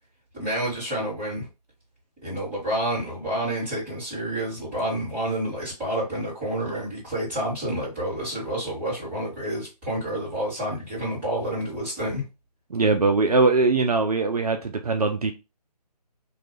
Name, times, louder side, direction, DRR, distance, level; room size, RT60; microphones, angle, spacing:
voice 1, 0.3-1.5 2.2-12.2, right 1 dB, 5° right, 1.9 m, -29 dB
voice 2, 12.7-15.3, right 3 dB, 65° right, 0.5 m, -21 dB
3.0 x 2.3 x 3.2 m
figure-of-eight pair, 145°, 21 cm